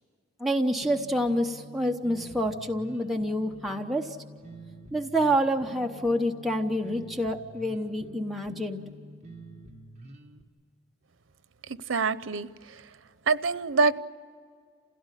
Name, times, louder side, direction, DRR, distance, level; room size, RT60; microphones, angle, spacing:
voice 1, 0.4-4.2 4.9-8.8, equal, ahead, 0.9 m, -27 dB
sound 1, 0.8-10.4, equal, 35° right, 1.7 m, -47 dB
voice 2, 11.7-12.5 13.3-14.0, right 4 dB, 85° right, 0.7 m, -25 dB
28.5 x 17.0 x 9.9 m
head